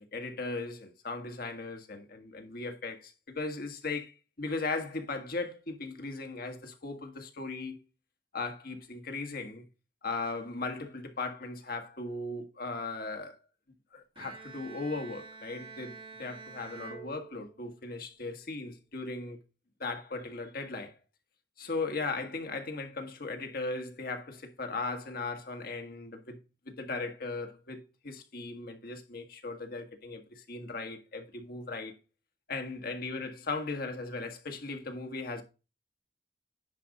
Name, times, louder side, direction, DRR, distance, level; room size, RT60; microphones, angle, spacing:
voice 1, 0.0-7.8 8.3-9.6 10.0-13.4 13.9-19.4 19.8-21.0 21.6-26.4 26.6-31.9 32.5-35.4, left 3 dB, 55° left, 1.6 m, -37 dB
Bowed string instrument, 14.2-17.9, right 5 dB, 30° right, 2.0 m, -48 dB
10.5 x 4.2 x 5.2 m
head